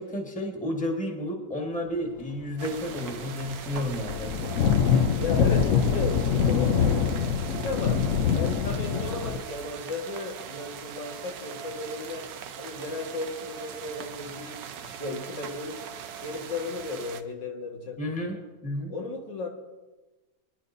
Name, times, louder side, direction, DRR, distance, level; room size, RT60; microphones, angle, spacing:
voice 1, 0.0-4.4 18.0-18.9, left 1 dB, 5° left, 1 dB, 1.5 m, -32 dB
sound 1, 2.6-17.2, right 8 dB, 90° right, 1.5 m, -41 dB
sound 2, 2.7-2.9 3.1-9.4, left 7 dB, 60° left, 0.9 m, -24 dB
voice 2, 4.2-4.6 5.2-8.0 8.3-12.3 12.6-15.8 16.2-18.0 18.3-18.4 18.9-19.5, left 3 dB, 85° left, 0 dB, 2.4 m, -35 dB
23.5 x 10.5 x 2.7 m, 1.2 s
omnidirectional pair, 1.9 m